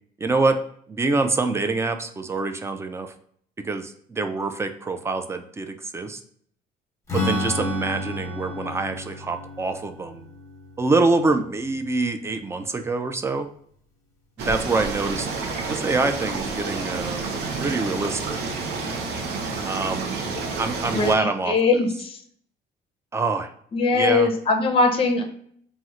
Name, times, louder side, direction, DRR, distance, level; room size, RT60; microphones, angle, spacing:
voice 1, 0.2-0.6 0.9-3.1 3.6-6.2 7.1-10.3 10.8-13.5 14.4-15.3 15.7-17.2 17.6-18.4 19.7-20.2 20.6-21.5 23.1-23.5 23.9-24.3, right 3 dB, 15° right, 7 dB, 0.3 m, -25 dB
Strum, 7.1-12.7, left 2 dB, 15° left, 1.1 m, -32 dB
sound 1, 14.4-21.1, right 4 dB, 80° right, 0.6 m, -29 dB
voice 2, 20.9-22.2 23.7-25.2, left 3 dB, 35° left, 5 dB, 0.6 m, -21 dB
2.9 x 2.1 x 3.6 m, 0.63 s
cardioid pair, 110°, 17 cm